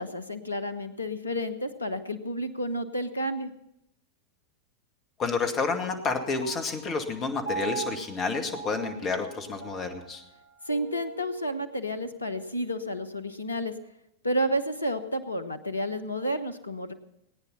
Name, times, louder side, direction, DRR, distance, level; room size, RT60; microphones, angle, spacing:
voice 1, 0.0-3.5 10.7-13.7 14.2-16.9, equal, 80° left, 11 dB, 1.1 m, -31 dB
voice 2, 5.2-10.2, left 4 dB, 30° left, 5 dB, 2.2 m, -30 dB
Piano, 6.4-13.1, right 5 dB, 85° right, 1.8 m, -42 dB
19.5 x 9.7 x 5.7 m, 0.79 s
figure-of-eight pair, 90°, 0 cm